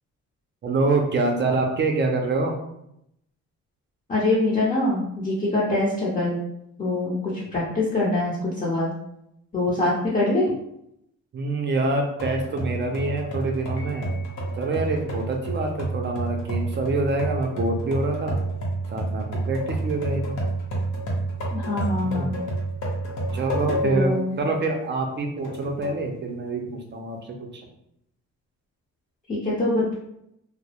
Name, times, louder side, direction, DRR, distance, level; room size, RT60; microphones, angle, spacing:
voice 1, 0.6-2.5 11.3-14.1 14.5-18.4 18.9-20.3 22.0-22.3 23.3-27.2 27.5-27.7, right 2 dB, 35° right, 2 dB, 0.4 m, -26 dB
voice 2, 4.1-6.4 6.8-8.9 9.5-10.5 21.5-22.4 23.8-24.4 29.3-29.9, left 2 dB, 30° left, -7 dB, 0.6 m, -24 dB
sound 1, 12.2-24.1 24.6-24.7 25.4-26.0, right 2 dB, 80° left, 0.7 m, -29 dB
Piano, 13.8-14.9, left 3 dB, 55° left, 0.8 m, -48 dB
2.2 x 2.0 x 2.7 m, 0.79 s
cardioid pair, 90°, 30 cm